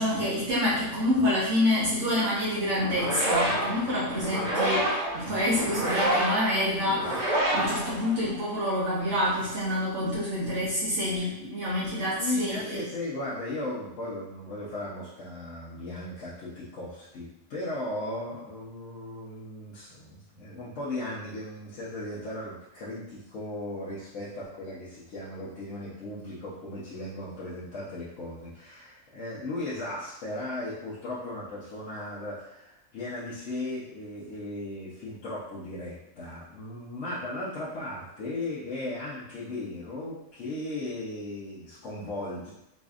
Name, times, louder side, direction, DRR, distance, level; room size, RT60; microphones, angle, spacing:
voice 1, 0.0-12.8, left 1 dB, 60° right, -8 dB, 1.2 m, -27 dB
sound 1, 2.7-8.6, right 1 dB, 40° right, 0.9 m, -28 dB
voice 2, 12.2-42.5, left 1 dB, 65° left, -9 dB, 1.0 m, -36 dB
4.0 x 2.6 x 2.4 m, 0.85 s
omnidirectional pair, 1.5 m